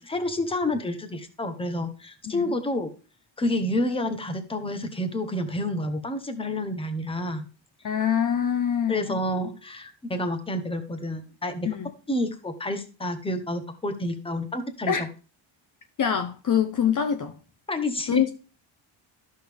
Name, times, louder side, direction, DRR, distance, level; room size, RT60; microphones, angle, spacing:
voice 1, 0.0-2.9 3.4-7.5 8.9-11.7 12.1-15.1 17.7-18.2, left 1 dB, 10° left, 1.0 m, -29 dB
voice 2, 7.8-9.2 11.7-11.9 14.9-15.0 16.0-17.4 18.1-18.3, left 8 dB, 40° left, 0.7 m, -24 dB
13.0 x 6.4 x 3.4 m
cardioid pair, 180°, 49 cm